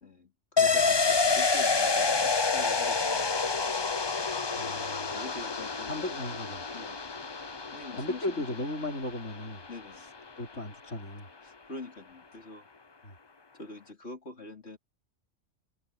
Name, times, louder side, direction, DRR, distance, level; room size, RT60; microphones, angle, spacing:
voice 1, 0.0-3.7 5.1-6.0 6.7-7.0 7.7-8.5 9.7-10.1 11.4-12.7 13.5-14.8, left 2 dB, 60° left, 3.9 m, -46 dB
sound 1, 0.6-10.0 10.3-10.4, left 4 dB, 25° left, 0.7 m, -28 dB
voice 2, 4.6-5.1 5.9-6.6 7.9-9.6 9.9-11.3 13.0-13.2, left 1 dB, 75° left, 6.0 m, -36 dB
omnidirectional pair, 1.3 m